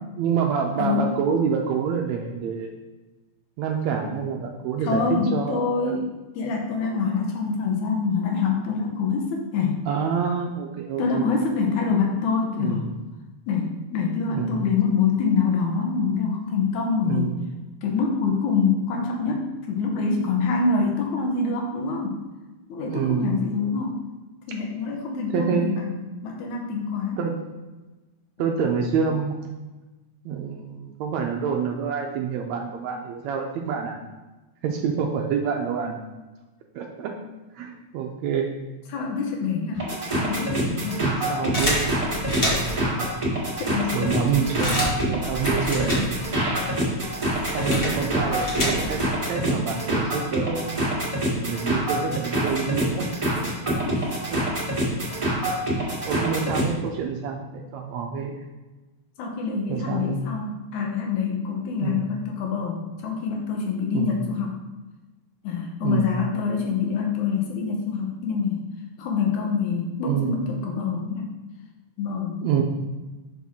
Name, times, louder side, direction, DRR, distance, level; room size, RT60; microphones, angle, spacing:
voice 1, 0.2-2.7 3.6-5.9 9.9-11.2 12.6-12.9 14.3-14.7 17.0-17.5 22.9-23.3 25.3-25.9 27.2-27.3 28.4-29.6 30.2-34.0 34.6-36.0 36.7-37.2 37.5-38.5 40.3-40.4 41.0-42.0 42.3-43.1 43.9-46.5 47.5-49.0 49.3-50.9 51.4-53.1 54.3-54.4 55.8-58.4 59.7-60.2 61.8-62.0 63.9-64.3 65.8-66.1 70.0-70.4 72.4-72.6, right 6 dB, 80° right, 2 dB, 1.7 m, -27 dB
voice 2, 0.8-1.1 4.8-6.1 6.4-9.8 11.0-12.9 13.5-17.4 17.8-22.2 22.7-24.0 24.5-25.8 26.2-27.2 38.9-41.0 43.6-44.1 45.8-45.9 46.5-46.6 47.3-48.1 53.6-54.2 59.2-64.6 65.4-68.6 69.0-71.3 72.0-72.6, left 5 dB, 75° left, 1 dB, 2.3 m, -26 dB
sound 1, 39.7-56.7, right 1 dB, 15° right, 1.2 m, -26 dB
sound 2, 41.5-42.9 43.5-43.6 43.8-46.5 46.7-49.1, equal, 55° left, 0.6 m, -28 dB
6.1 x 5.8 x 3.6 m, 1.1 s
omnidirectional pair, 3.6 m